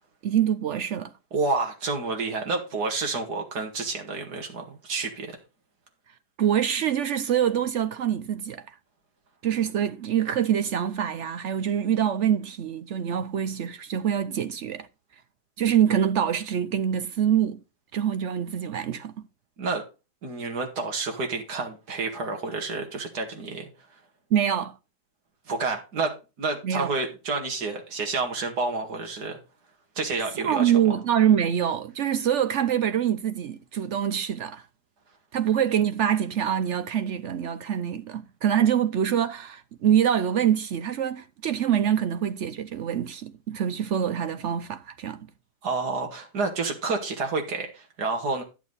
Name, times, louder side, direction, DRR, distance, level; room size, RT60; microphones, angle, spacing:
voice 1, 0.2-1.1 6.4-8.6 9.4-14.9 15.6-17.6 17.9-19.1 24.3-24.8 26.6-26.9 30.4-34.6 35.3-45.2, right 9 dB, 65° right, 0.8 m, -25 dB
voice 2, 1.3-5.4 19.6-19.9 20.2-23.7 25.5-29.4 30.0-31.0 45.6-48.4, right 3 dB, 85° right, 2.4 m, -29 dB
11.0 x 7.1 x 4.0 m
omnidirectional pair, 1.7 m